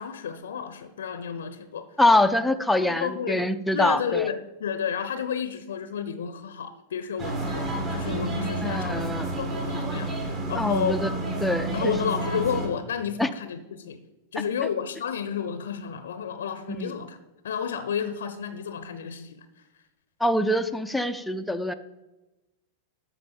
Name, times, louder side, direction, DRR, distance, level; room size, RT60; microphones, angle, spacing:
voice 1, 0.0-1.9 2.8-3.4 3.7-10.2 10.5-11.0 11.7-14.1 14.3-17.2 17.4-19.6, left 7 dB, 65° left, 11 dB, 0.6 m, -31 dB
voice 2, 2.0-4.3 8.6-9.3 10.5-11.1 11.4-11.9 13.2-13.3 16.8-16.9 20.2-21.7, left 1 dB, ahead, 7 dB, 0.5 m, -24 dB
sound 1, 7.2-12.7, right 2 dB, 30° right, 2.0 m, -30 dB
13.0 x 4.7 x 7.1 m, 1.0 s
figure-of-eight pair, 90°, 0 cm